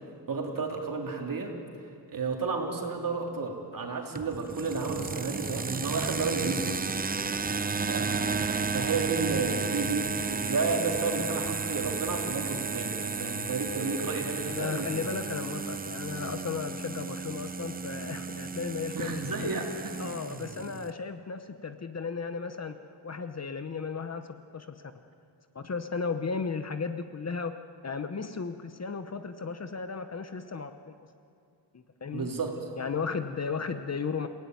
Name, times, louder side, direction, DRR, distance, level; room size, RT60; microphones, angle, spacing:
voice 1, 0.3-1.5 2.1-6.9 7.8-14.9 18.9-19.9 32.1-32.6, right 4 dB, 50° right, 1 dB, 3.5 m, -32 dB
sound 1, 4.2-12.2, left 2 dB, 75° left, 4.4 m, -50 dB
sound 2, 4.2-20.9, right 4 dB, 20° right, 0.6 m, -33 dB
voice 2, 14.5-19.5 20.0-22.8 23.0-24.8 25.5-27.6 27.8-30.9 31.7-32.3 32.8-34.3, left 5 dB, 40° left, 9 dB, 1.0 m, -35 dB
29.0 x 17.0 x 9.4 m, 2.4 s
wide cardioid pair, 160°, 42 cm